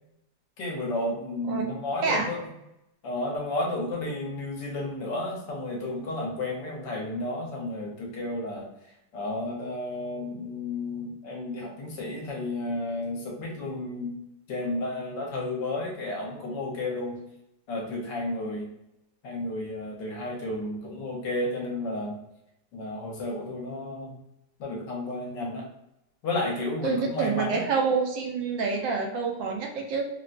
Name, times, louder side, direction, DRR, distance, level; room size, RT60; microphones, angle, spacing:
voice 1, 0.6-2.4 3.0-8.7 9.1-14.2 14.5-17.2 17.7-18.7 19.2-22.2 22.7-24.1 24.6-25.6 26.2-27.6, left 2 dB, 70° left, -2 dB, 1.5 m, -32 dB
voice 2, 26.8-30.1, right 5 dB, 85° right, 1 dB, 1.3 m, -27 dB
4.1 x 2.1 x 2.5 m, 0.83 s
omnidirectional pair, 2.0 m